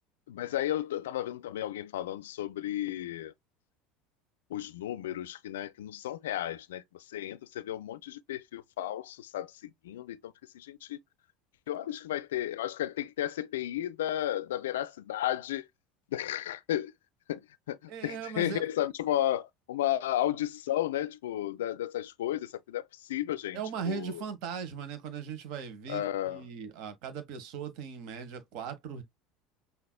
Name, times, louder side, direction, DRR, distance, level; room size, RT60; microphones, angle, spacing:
voice 1, 0.3-3.3 4.5-6.8 7.1-11.0 11.7-15.7 16.1-16.9 17.3-17.4 17.7-23.6 23.9-24.2 25.9-26.4, left 12 dB, 75° left, 0.3 m, -33 dB
voice 2, 17.9-18.6 23.5-29.0, right 7 dB, 60° right, 1.3 m, -38 dB
5.8 x 2.8 x 2.2 m
hypercardioid pair, 75°, 0 cm